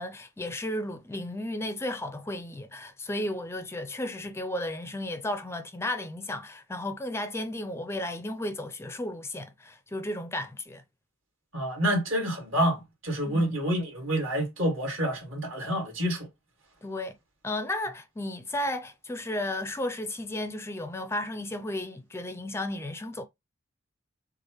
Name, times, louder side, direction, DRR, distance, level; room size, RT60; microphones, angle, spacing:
voice 1, 0.0-10.8 13.3-13.6 16.8-17.1 17.4-23.2, left 1 dB, 15° left, 0.4 m, -34 dB
voice 2, 11.5-16.3, equal, 65° right, 2.6 m, -28 dB
6.4 x 2.5 x 3.1 m
head